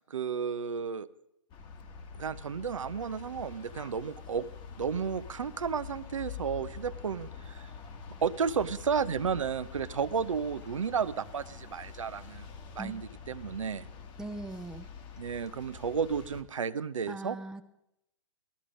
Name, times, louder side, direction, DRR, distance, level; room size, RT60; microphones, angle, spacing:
voice 1, 0.1-1.1 2.2-4.4 4.8-7.7 8.2-12.5 12.8-13.9 15.2-17.4, right 6 dB, 75° right, 13 dB, 0.7 m, -32 dB
sound 1, 1.5-16.4, left 6 dB, 25° left, 1.3 m, -46 dB
voice 2, 14.2-14.9 17.1-17.6, right 2 dB, 5° right, 6 dB, 0.6 m, -40 dB
16.0 x 13.0 x 5.1 m, 0.81 s
figure-of-eight pair, 120°, 16 cm